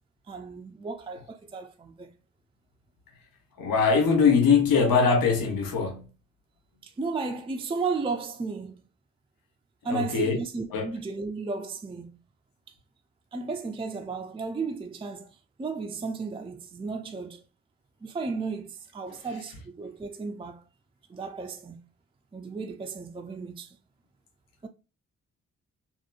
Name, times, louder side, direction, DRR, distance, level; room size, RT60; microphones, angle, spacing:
voice 1, 0.3-2.1 6.8-8.8 9.8-12.1 13.3-15.3 15.6-17.4 18.0-20.6 21.1-21.8 22.3-23.8 24.6-24.7, right 4 dB, 15° right, 0.4 m, -34 dB
voice 2, 3.6-6.0 9.9-10.4 10.7-10.9, left 5 dB, 75° left, 0.9 m, -22 dB
2.8 x 2.2 x 2.4 m
supercardioid pair, 40°, 35 cm